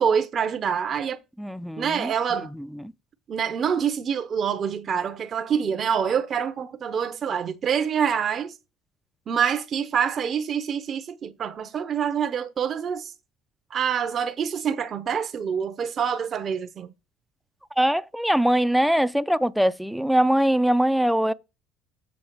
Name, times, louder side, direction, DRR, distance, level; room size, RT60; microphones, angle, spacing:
voice 1, 0.0-1.2 1.8-2.5 3.3-8.5 9.3-13.1 13.7-16.9, right 7 dB, 45° right, 0.6 m, -26 dB
voice 2, 1.4-2.1 17.8-21.3, right 1 dB, ahead, 0.4 m, -22 dB
7.1 x 4.7 x 4.6 m
supercardioid pair, 80°, 0 cm